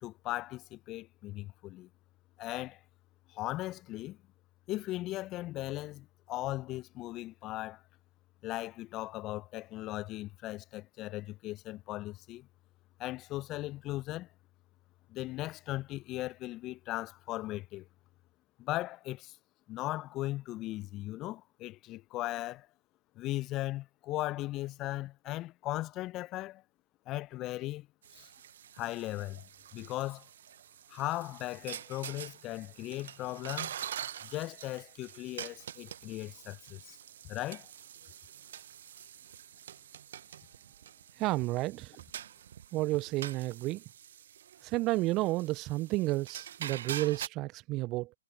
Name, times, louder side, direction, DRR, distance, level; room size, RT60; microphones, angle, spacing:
voice 1, 0.0-1.9 2.4-2.8 3.3-4.2 4.7-7.8 8.4-12.5 13.0-14.3 15.1-17.9 18.6-19.4 19.7-22.7 23.2-26.6 27.1-27.9 28.1-28.3 28.8-29.4 29.7-30.3 30.9-33.7 34.2-37.0 37.2-37.7, left 17 dB, 25° left, 1.0 m, -38 dB
sound 1, 28.0-47.3, right 10 dB, 50° right, 1.3 m, -46 dB
voice 2, 41.2-42.0 42.7-43.8 44.6-48.1, right 19 dB, 25° right, 0.8 m, -31 dB
figure-of-eight pair, 130°, 0 cm